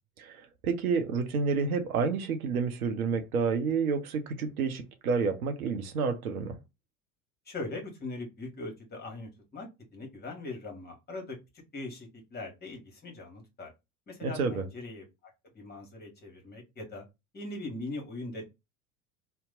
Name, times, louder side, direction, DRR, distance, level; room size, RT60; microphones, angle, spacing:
voice 1, 0.2-6.6 14.2-14.6, right 5 dB, 70° right, 0.7 m, -29 dB
voice 2, 7.4-11.4 11.7-13.7 14.1-17.0 17.3-18.4, left 2 dB, 20° left, 1.2 m, -41 dB
2.8 x 2.2 x 3.6 m
figure-of-eight pair, 70°, 44 cm